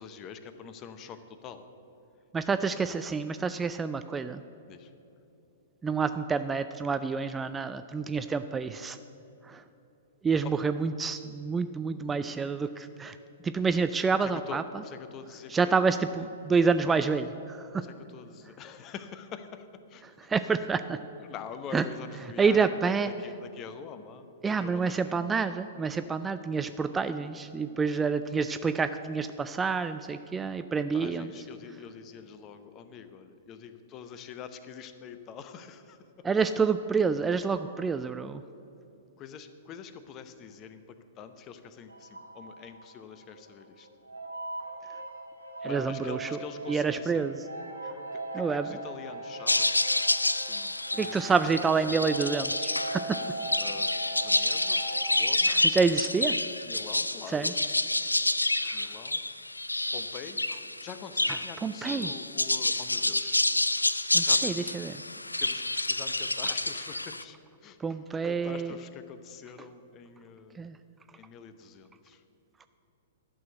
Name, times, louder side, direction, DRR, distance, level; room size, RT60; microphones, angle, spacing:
voice 1, 0.0-1.6 4.7-4.9 12.7-12.8 14.2-15.7 17.8-20.0 21.2-25.3 30.7-36.4 39.2-43.9 45.6-47.2 48.1-49.8 50.5-51.4 53.6-53.9 54.1-55.7 56.6-57.6 58.7-59.2 59.9-63.4 64.2-64.6 65.2-67.4 67.6-68.0 68.2-70.7 71.2-72.2, left 7 dB, 30° left, 10 dB, 0.7 m, -45 dB
voice 2, 2.3-4.4 5.8-9.0 9.4-9.6 10.2-13.2 13.4-14.6 15.5-17.9 20.2-21.0 21.7-21.8 22.4-23.1 24.4-31.3 36.2-38.4 45.6-46.3 46.7-47.4 48.3-48.7 51.0-53.2 55.5-56.4 57.3-57.5 58.6-58.8 61.3-62.1 64.1-65.0 67.8-68.7 70.5-70.8, right 5 dB, 15° right, 10 dB, 0.3 m, -28 dB
sound 1, 41.9-43.5 43.8-55.0, right 1 dB, 85° right, 1.5 m, -40 dB
sound 2, 49.5-67.2, left 2 dB, 85° left, 0.3 m, -28 dB
11.5 x 6.1 x 7.8 m, 2.9 s
figure-of-eight pair, 105°, 0 cm